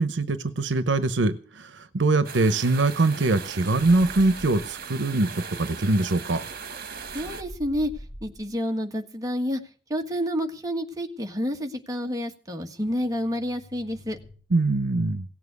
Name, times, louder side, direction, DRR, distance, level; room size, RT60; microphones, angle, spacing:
voice 1, 0.0-6.4 14.5-15.2, right 2 dB, 85° right, 12 dB, 0.9 m, -23 dB
sound 1, 2.2-7.4, right 6 dB, 55° right, 1.5 m, -38 dB
sound 2, 3.7-4.8 7.0-8.6 12.7-14.4, equal, 55° left, 3.7 m, -44 dB
voice 2, 7.1-7.9 8.2-9.6 9.9-14.2, equal, 20° right, 3 dB, 1.6 m, -29 dB
17.0 x 7.5 x 8.1 m, 0.42 s
head